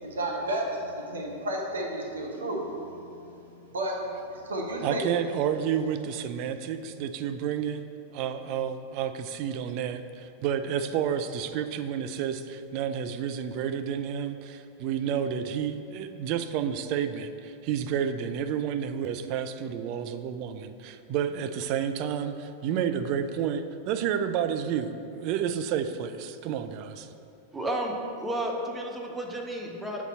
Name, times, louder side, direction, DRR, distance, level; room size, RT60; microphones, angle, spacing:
voice 1, 0.0-3.0 3.4-3.5 3.7-4.0 4.3-5.0, right 1 dB, 70° right, 0 dB, 0.8 m, -32 dB
voice 2, 4.8-27.1, right 8 dB, 45° right, 9 dB, 0.3 m, -30 dB
voice 3, 27.5-30.0, right 1 dB, 10° right, 1 dB, 0.7 m, -32 dB
7.0 x 4.0 x 4.2 m, 2.7 s
figure-of-eight pair, 90°, 0 cm